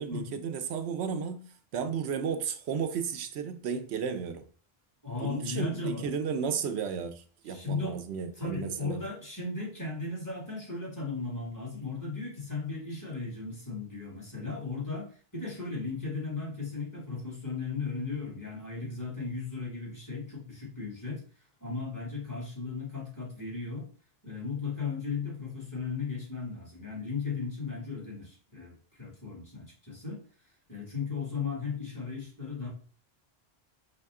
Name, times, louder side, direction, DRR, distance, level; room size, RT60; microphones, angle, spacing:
voice 1, 0.0-4.4 5.2-9.1, right 6 dB, 85° right, 0.9 m, -33 dB
voice 2, 5.0-6.1 7.5-7.9 8.4-21.2 21.6-23.9 24.2-30.2 30.7-32.7, left 4 dB, 20° left, 1.7 m, -36 dB
5.2 x 2.3 x 3.5 m
omnidirectional pair, 1.1 m